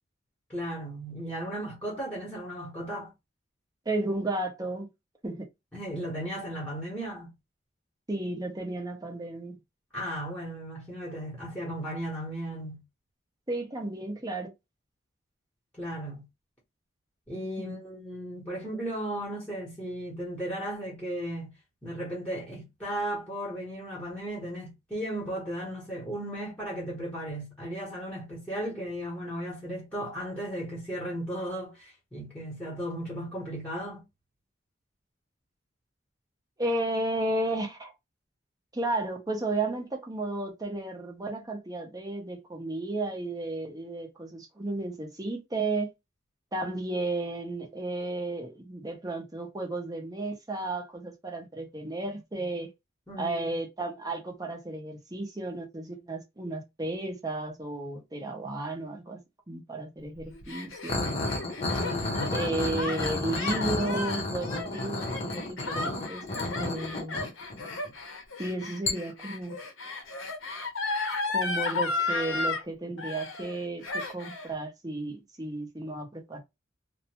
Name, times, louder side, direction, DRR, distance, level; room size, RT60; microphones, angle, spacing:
voice 1, 0.5-3.1 5.7-7.3 9.9-12.8 15.7-16.3 17.3-21.5 21.8-34.0 53.1-53.5 61.8-62.3, right 1 dB, 5° left, 1.0 m, -35 dB
voice 2, 3.9-4.9 5.2-5.4 8.1-9.5 13.5-14.5 17.6-17.7 36.6-37.9 38.7-45.9 46.5-52.7 53.2-59.2 59.5-61.1 62.3-66.2 66.6-67.2 68.4-69.6 71.3-76.4, right 2 dB, 20° right, 0.7 m, -33 dB
Gasp, 60.2-72.6 73.0-73.6 73.8-74.5, left 3 dB, 80° left, 0.8 m, -34 dB
sound 1, 60.9-67.9 68.9-69.0, left 2 dB, 30° left, 0.7 m, -32 dB
2.5 x 2.1 x 2.9 m
head